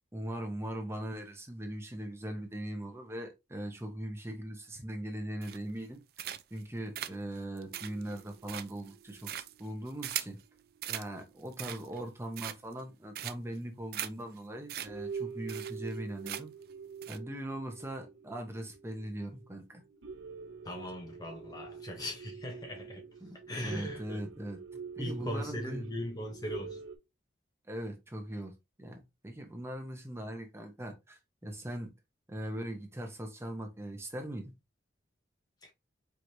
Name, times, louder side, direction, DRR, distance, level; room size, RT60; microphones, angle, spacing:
voice 1, 0.1-6.0 6.5-10.4 10.9-16.5 17.1-19.8 23.2-25.9 27.7-28.5 28.8-31.9 32.3-34.5, right 1 dB, 15° right, 0.8 m, -40 dB
sound 1, 5.4-5.8 6.2-6.6 6.9-10.4 10.8-11.1 11.4-12.0 12.3-12.8 13.1-13.6 13.9-14.1 14.4-14.5 14.7-14.9 15.1-15.2 15.5-16.0 16.2-16.6 17.0-17.2, right 12 dB, 50° right, 0.3 m, -39 dB
sound 2, 7.6-11.6 12.0-12.1 13.2-13.3 13.8-13.9 14.4-14.6 14.8-27.0, right 6 dB, 70° right, 0.7 m, -46 dB
voice 2, 20.6-23.0 23.5-24.2 25.0-26.8 35.6-35.7, left 1 dB, 20° left, 0.6 m, -39 dB
4.6 x 3.1 x 2.6 m
head